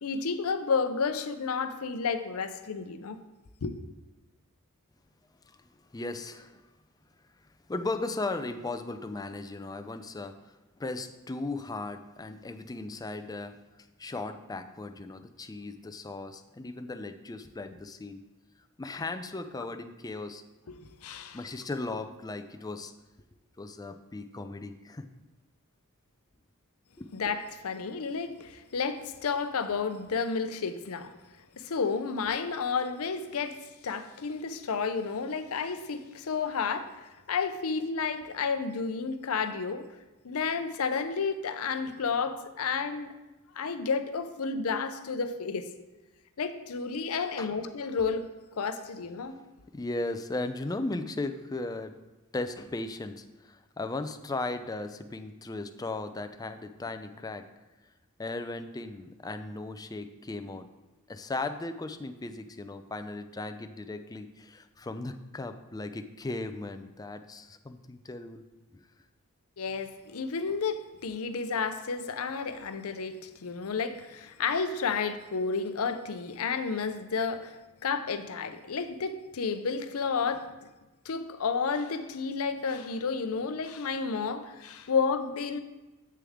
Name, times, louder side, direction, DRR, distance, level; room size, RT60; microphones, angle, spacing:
voice 1, 0.0-3.2 3.6-3.7 20.7-21.4 27.1-31.1 31.6-39.9 40.2-43.1 43.6-45.7 46.4-48.3 48.6-49.4 69.6-80.5 81.1-85.6, left 5 dB, 75° left, 10 dB, 0.6 m, -31 dB
voice 2, 5.5-6.6 7.7-13.6 14.0-18.2 18.8-20.4 21.3-22.9 23.6-25.1 27.0-27.1 47.4-47.5 49.3-49.4 49.7-51.9 52.3-57.4 58.2-60.7 61.1-68.4 68.7-68.9, left 2 dB, 15° left, 8 dB, 0.4 m, -37 dB
7.6 x 6.7 x 3.6 m, 1.1 s
head